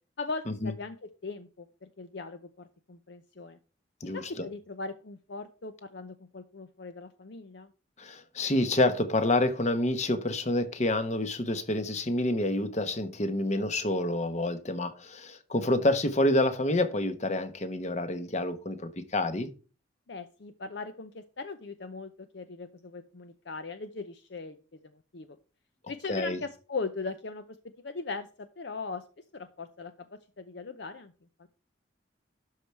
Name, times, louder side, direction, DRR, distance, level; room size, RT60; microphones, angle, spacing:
voice 1, 0.2-3.6 4.1-7.7 20.1-24.6 25.1-25.4 25.9-27.4 27.8-29.0 29.3-31.1 31.4-31.5, left 4 dB, 60° left, 0.6 m, -39 dB
voice 2, 4.0-4.5 8.0-19.5 26.1-26.4, left 1 dB, 35° left, 1.0 m, -28 dB
12.5 x 4.8 x 4.4 m
head